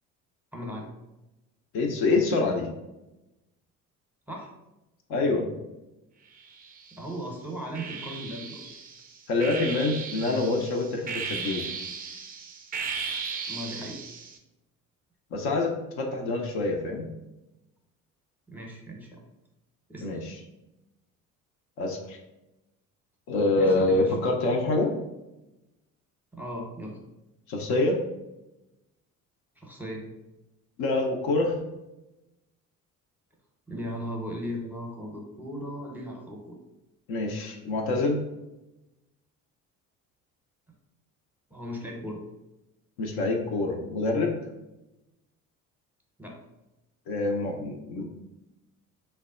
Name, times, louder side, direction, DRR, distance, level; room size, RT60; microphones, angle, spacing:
voice 1, 0.5-0.9 4.3-4.5 6.9-8.7 13.5-14.0 18.5-19.2 19.9-20.2 23.6-24.1 26.3-27.0 29.6-30.1 33.7-36.5 41.5-42.2 46.2-46.4, equal, 5° right, -1 dB, 0.8 m, -37 dB
voice 2, 1.7-2.7 5.1-5.5 9.3-11.7 15.3-17.1 20.0-20.3 21.8-22.2 23.3-24.9 27.5-28.0 30.8-31.6 37.1-38.2 43.0-44.4 47.1-48.1, left 2 dB, 60° left, 1 dB, 0.6 m, -26 dB
sound 1, 6.4-7.1 7.7-14.4, right 5 dB, 25° right, 0.3 m, -36 dB
3.3 x 2.2 x 2.4 m, 0.97 s
hypercardioid pair, 55°, 43 cm